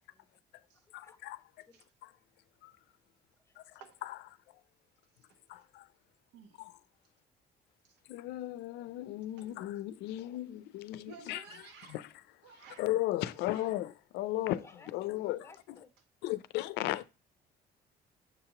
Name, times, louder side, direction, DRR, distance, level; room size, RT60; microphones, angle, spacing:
voice 1, 0.9-1.4 2.0-2.1 2.6-2.7 3.6-3.7 4.0-4.2 5.5-5.9 6.6-6.7 8.1-11.4 11.9-12.0 12.8-14.7 14.9-15.5 16.2-17.0, left 15 dB, 85° left, 0.5 m, -35 dB
voice 2, 5.1-5.6 6.3-6.6 7.8-8.0 9.3-9.6 11.1-12.1 12.4-12.9 13.5-13.8 14.3-14.5 16.6-16.8, right 6 dB, 85° right, 1.2 m, -55 dB
voice 3, 14.4-15.9, left 3 dB, 15° left, 0.9 m, -58 dB
7.2 x 2.9 x 5.6 m
cardioid pair, 110°, 17 cm